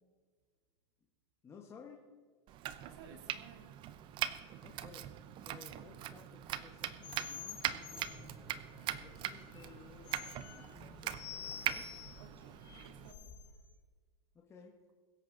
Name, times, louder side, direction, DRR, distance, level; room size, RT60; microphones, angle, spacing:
voice 1, 1.4-2.0 4.6-5.1 5.4-8.6 9.0-11.3 11.7-11.9 14.3-14.7, left 5 dB, 20° left, 0 dB, 1.3 m, -57 dB
Domestic sounds home sounds, 2.5-13.1, right 12 dB, 35° right, 0.7 m, -42 dB
voice 2, 2.8-3.7 5.8-6.1 12.1-13.3, right 6 dB, 75° right, 2 dB, 2.5 m, -57 dB
sound 1, 7.0-13.6, left 7 dB, 35° left, 3.0 m, -50 dB
sound 2, 7.9-12.6, right 3 dB, 5° right, 0.9 m, -61 dB
22.5 x 8.3 x 3.9 m, 1.5 s
supercardioid pair, 135°, 15 cm